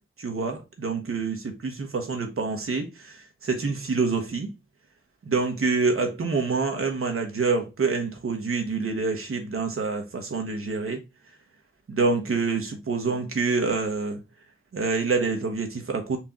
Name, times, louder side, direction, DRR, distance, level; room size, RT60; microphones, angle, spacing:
voice 1, 0.2-4.5 5.3-11.0 11.9-14.2 14.7-16.2, right 4 dB, 90° right, 1.2 m, -27 dB
4.5 x 2.9 x 3.6 m
cardioid pair, 45°, 21 cm